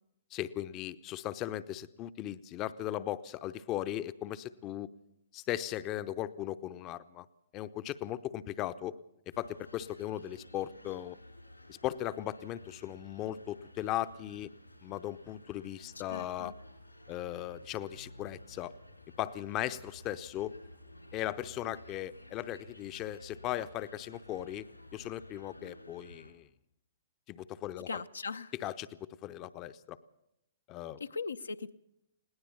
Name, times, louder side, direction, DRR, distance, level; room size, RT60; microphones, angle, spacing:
voice 1, 0.3-4.9 5.3-7.3 7.5-9.0 9.4-11.2 11.7-14.5 14.8-16.6 17.1-18.7 19.2-20.5 21.1-24.7 24.9-26.5 27.3-28.0 28.5-30.0 30.7-31.0, left 13 dB, 30° left, 13 dB, 0.7 m, -38 dB
sound 1, 9.3-26.3, left 1 dB, 90° left, 4.3 m, -54 dB
voice 2, 16.1-16.5 27.9-28.5 31.0-31.7, left 4 dB, 70° left, 9 dB, 0.7 m, -39 dB
20.5 x 18.0 x 7.2 m, 0.81 s
figure-of-eight pair, 115°, 0 cm